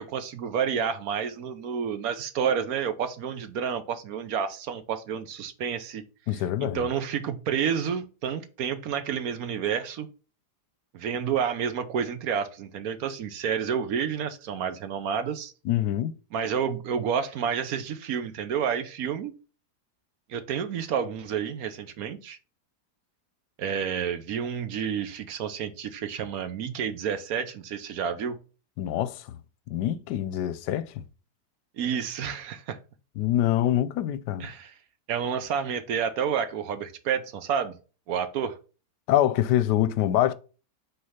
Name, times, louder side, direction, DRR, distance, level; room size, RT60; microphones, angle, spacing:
voice 1, 0.0-6.0 6.6-10.1 10.9-15.5 16.3-19.3 20.3-22.4 23.6-28.4 31.8-32.8 34.4-34.7 35.1-37.8 38.1-38.6, right 7 dB, 65° right, 1.1 m, -29 dB
voice 2, 6.3-6.8 15.6-16.1 28.8-29.4 29.7-30.9 33.2-34.5 39.1-40.3, left 12 dB, 85° left, 1.2 m, -25 dB
5.7 x 3.3 x 5.6 m
omnidirectional pair, 1.8 m